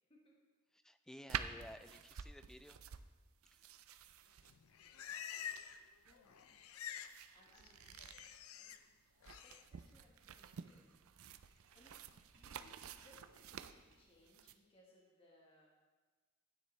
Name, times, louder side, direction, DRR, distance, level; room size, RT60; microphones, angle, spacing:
voice 1, 0.7-2.8 3.5-3.6, equal, ahead, 10 dB, 0.3 m, -55 dB
sound 1, 1.3-14.6, right 8 dB, 80° right, 0.5 m, -50 dB
Livestock farm animals working animals, 4.4-5.9 6.1-7.2 7.5-8.8 9.2-9.6, left 9 dB, 85° left, 0.5 m, -49 dB
voice 2, 6.0-6.5 7.3-7.8 8.6-8.7 9.4-10.9 11.7-12.1 12.4-15.7, left 1 dB, 25° left, -2 dB, 1.4 m, -68 dB
sound 2, 6.1-14.2, right 2 dB, 65° right, 2.0 m, -73 dB
12.0 x 9.5 x 3.2 m, 1.4 s
head